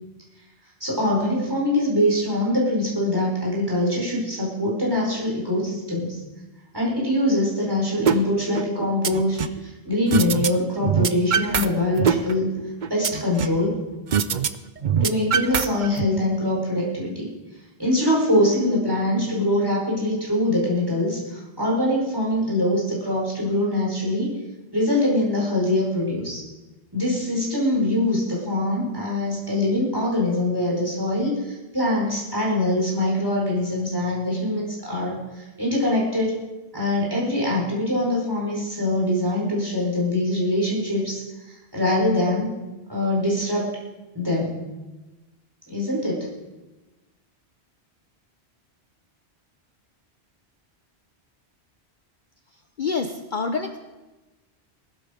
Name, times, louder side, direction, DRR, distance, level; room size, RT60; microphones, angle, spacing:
voice 1, 0.8-6.2 6.7-9.4 9.6-12.5 12.9-13.8 15.0-17.3 17.8-24.4 24.7-26.4 26.9-36.3 36.7-41.2 41.5-42.5 42.9-43.6 44.1-44.6 45.7-46.3, left 1 dB, 20° right, -5 dB, 4.9 m, -23 dB
sound 1, 8.1-8.2 8.6-9.6 10.1-10.5 10.8-11.7 12.0-13.6 14.1-14.5 14.8-16.1, right 7 dB, 50° right, 0.7 m, -22 dB
voice 2, 52.8-53.8, left 4 dB, 50° left, 6 dB, 0.9 m, -27 dB
19.0 x 13.0 x 5.2 m, 1.1 s
omnidirectional pair, 1.1 m